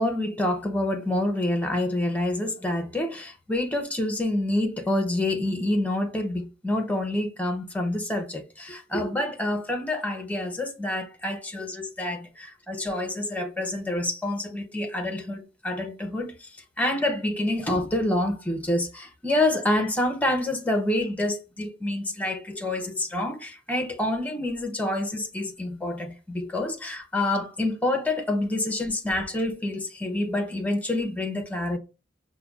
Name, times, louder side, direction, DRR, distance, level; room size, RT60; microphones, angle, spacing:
voice 1, 0.0-16.5 16.8-31.8, left 1 dB, 10° left, 0.7 m, -27 dB
5.6 x 2.2 x 2.3 m
head